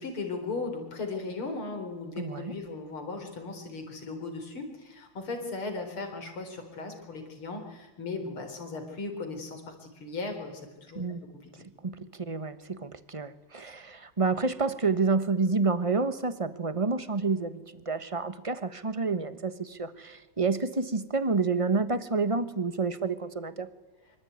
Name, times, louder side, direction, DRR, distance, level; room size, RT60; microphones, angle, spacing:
voice 1, 0.0-11.0 11.4-11.7, left 3 dB, 75° left, 5 dB, 4.9 m, -37 dB
voice 2, 2.2-2.5 10.9-11.2 11.8-23.7, right 4 dB, 20° right, 12 dB, 0.9 m, -29 dB
25.5 x 24.0 x 9.4 m, 1.1 s
omnidirectional pair, 2.4 m